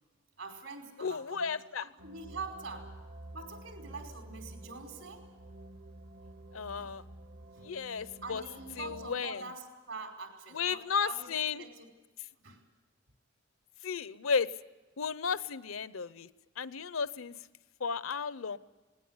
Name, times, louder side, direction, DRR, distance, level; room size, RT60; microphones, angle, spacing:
voice 1, 0.4-1.5 1.8-2.9 3.3-5.3 6.8-6.9 7.5-7.7 8.2-11.9 12.4-12.6, right 3 dB, 80° right, 2 dB, 5.0 m, -45 dB
voice 2, 1.0-1.9 6.5-7.0 7.6-8.4 8.8-9.4 10.5-11.7 13.8-14.5 15.0-16.3 16.6-17.4 17.8-18.6, left 6 dB, 85° left, 16 dB, 0.7 m, -33 dB
sound 1, 2.0-9.1, right 1 dB, 60° right, 0.9 m, -50 dB
19.0 x 19.0 x 9.6 m, 1.2 s
head